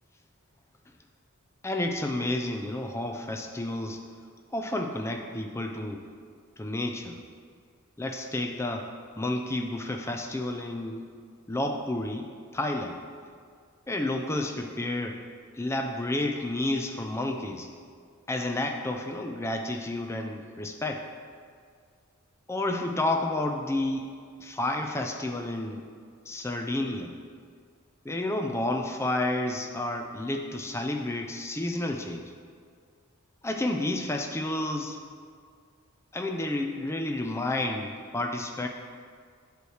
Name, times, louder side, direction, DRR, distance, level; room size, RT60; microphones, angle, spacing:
voice 1, 1.6-4.0 4.5-6.0 6.6-7.2 8.0-11.1 11.5-13.0 13.9-15.2 15.6-17.7 18.3-21.0 22.5-24.1 24.4-25.8 26.3-27.1 28.0-32.3 33.4-35.0 36.1-38.7, left 1 dB, 10° left, 3 dB, 0.4 m, -30 dB
8.2 x 3.1 x 6.4 m, 2.1 s
head